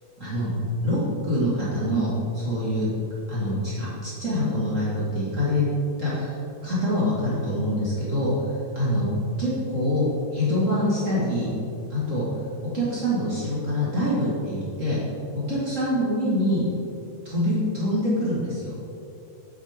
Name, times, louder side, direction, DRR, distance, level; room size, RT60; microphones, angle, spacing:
voice 1, 0.2-0.6 0.8-2.9 3.3-5.6 6.0-6.4 6.6-8.3 8.7-9.1 9.4-10.1 10.3-11.5 11.9-12.3 12.7-15.0 15.3-16.6 17.2-18.7, left 1 dB, 40° right, -9 dB, 1.0 m, -25 dB
9.7 x 8.0 x 3.7 m, 2.7 s
omnidirectional pair, 4.8 m